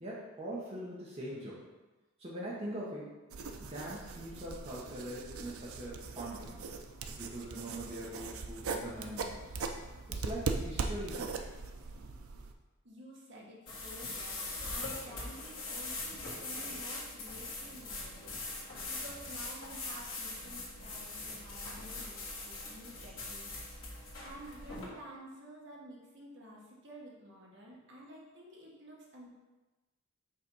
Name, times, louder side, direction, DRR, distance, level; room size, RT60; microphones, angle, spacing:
voice 1, 0.0-1.7 2.2-3.1 3.6-6.6 7.2-9.6 10.1-11.5 21.8-21.9, right 1 dB, 30° right, -6 dB, 1.0 m, -42 dB
Writing with Pencil on Paper, 3.3-12.5, right 4 dB, 85° right, 0.5 m, -40 dB
voice 2, 12.8-29.3, right 1 dB, 55° right, -3 dB, 1.2 m, -51 dB
sound 1, 13.7-24.9, left 2 dB, 70° left, 1.9 m, -42 dB
5.4 x 3.4 x 5.4 m, 1.1 s
head